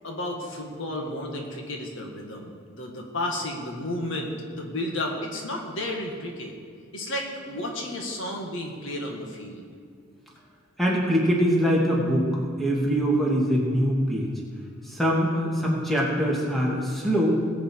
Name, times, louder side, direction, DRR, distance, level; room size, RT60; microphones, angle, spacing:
voice 1, 0.0-6.5 6.9-9.7, left 1 dB, 65° left, 1 dB, 1.9 m, -32 dB
voice 2, 10.8-12.3 12.6-14.3 14.8-17.4, equal, ahead, -4 dB, 2.5 m, -23 dB
20.5 x 8.3 x 4.7 m, 2.3 s
head